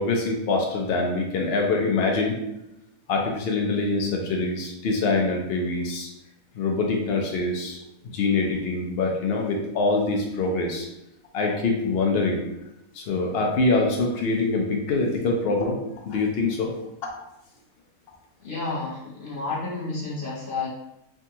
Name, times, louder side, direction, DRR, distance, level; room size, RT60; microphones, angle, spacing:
voice 1, 0.0-2.3 3.1-6.1 6.5-7.8 8.1-10.9 11.3-12.4 12.9-15.8 16.0-16.7, left 3 dB, 90° left, 0 dB, 0.5 m, -24 dB
voice 2, 18.4-20.7, left 3 dB, 50° left, -5 dB, 0.7 m, -31 dB
3.5 x 2.3 x 2.7 m, 0.88 s
omnidirectional pair, 1.6 m